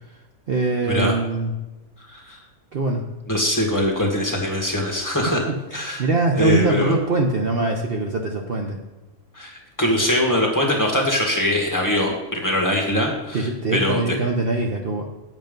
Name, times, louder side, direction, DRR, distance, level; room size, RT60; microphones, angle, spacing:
voice 1, 0.5-1.5 2.7-3.0 5.5-8.8 13.3-15.1, right 3 dB, 50° right, 2 dB, 0.9 m, -23 dB
voice 2, 2.1-2.4 3.3-5.4 5.7-6.1 6.4-7.0 9.3-14.2, left 1 dB, 15° left, -1 dB, 1.7 m, -22 dB
9.4 x 8.0 x 5.3 m, 1.1 s
omnidirectional pair, 1.4 m